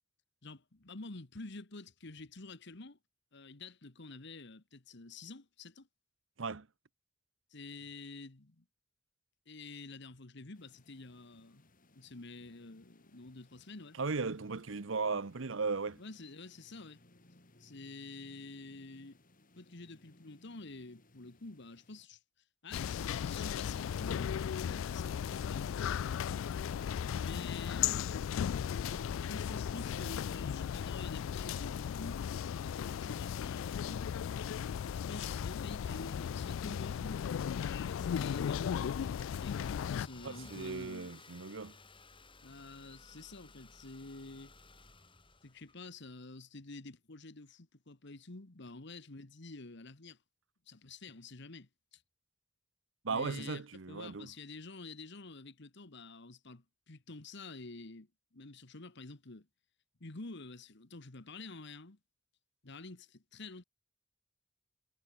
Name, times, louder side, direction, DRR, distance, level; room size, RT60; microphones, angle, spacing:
voice 1, 0.4-3.0 3.3-5.9 7.5-8.6 9.5-11.7 11.9-14.0 16.0-17.0 17.6-19.2 19.5-22.2 22.6-26.1 27.2-28.1 28.8-34.1 34.9-37.2 37.6-41.1 42.4-44.5 45.4-50.2 50.7-52.0 53.1-59.5 60.0-62.0 62.6-63.6, left 3 dB, 60° left, 1.6 m, -49 dB
sound 1, 10.5-22.1, left 1 dB, 45° left, 3.6 m, -65 dB
voice 2, 14.0-16.0 40.2-41.8 53.0-54.3, right 4 dB, 70° right, 0.9 m, -36 dB
sound 2, 22.7-40.1, left 8 dB, 80° left, 0.3 m, -36 dB
Car / Engine starting, 38.8-46.1, left 3 dB, 25° left, 4.8 m, -57 dB
head